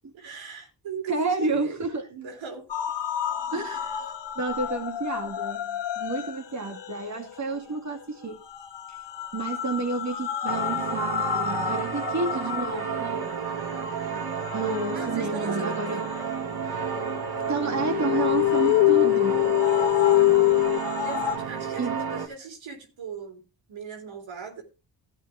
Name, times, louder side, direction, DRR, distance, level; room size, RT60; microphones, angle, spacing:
voice 1, 0.1-1.9 2.1-2.7 3.7-3.9 14.9-16.1 21.0-23.4 23.7-24.6, right 6 dB, 75° right, 2 dB, 3.5 m, -38 dB
voice 2, 1.1-2.1 3.5-8.4 8.9-9.0 9.3-13.4 14.5-16.0 17.5-19.6 21.8-22.0, right 3 dB, 35° right, 3 dB, 2.4 m, -30 dB
sound 1, 2.7-21.4, left 8 dB, 60° left, 1.6 m, -34 dB
sound 2, 10.5-22.3, right 7 dB, 50° right, 2.8 m, -32 dB
sound 3, 17.5-20.8, left 20 dB, 75° left, 0.6 m, -21 dB
13.0 x 7.9 x 3.6 m, 0.29 s
supercardioid pair, 50°, 47 cm